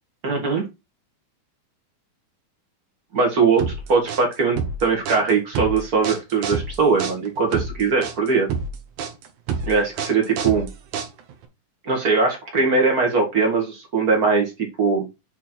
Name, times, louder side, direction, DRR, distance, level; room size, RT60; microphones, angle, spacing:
voice 1, 0.2-0.6 3.1-8.5 9.6-10.7 11.8-14.5 14.8-15.1, right 4 dB, 40° right, 1 dB, 1.4 m, -20 dB
sound 1, 3.6-11.4, right 6 dB, 65° right, 2.3 m, -28 dB
8.4 x 3.6 x 4.4 m, 0.24 s
omnidirectional pair, 4.3 m